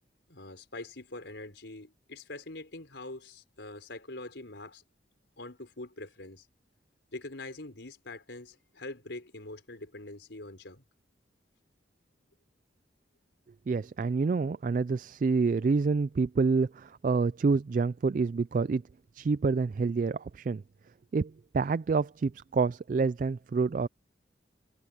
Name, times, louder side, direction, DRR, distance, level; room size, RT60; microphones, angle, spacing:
voice 1, 0.3-4.8 5.4-6.5 7.1-10.8, left 2 dB, 70° left, 4.3 m, -44 dB
voice 2, 13.7-18.8 19.1-20.6 21.1-23.9, right 4 dB, 45° right, 0.3 m, -27 dB
head